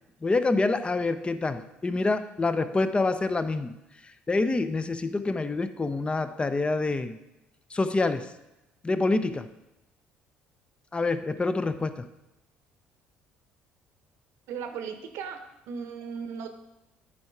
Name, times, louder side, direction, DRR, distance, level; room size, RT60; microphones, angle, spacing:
voice 1, 0.2-3.7 4.3-7.2 7.7-8.3 8.8-9.5 10.9-12.1, left 3 dB, 25° left, 11 dB, 0.6 m, -26 dB
voice 2, 14.5-15.4 15.7-16.5, right 6 dB, 75° right, 7 dB, 0.9 m, -36 dB
8.6 x 4.7 x 4.6 m, 0.93 s
hypercardioid pair, 65°, 5 cm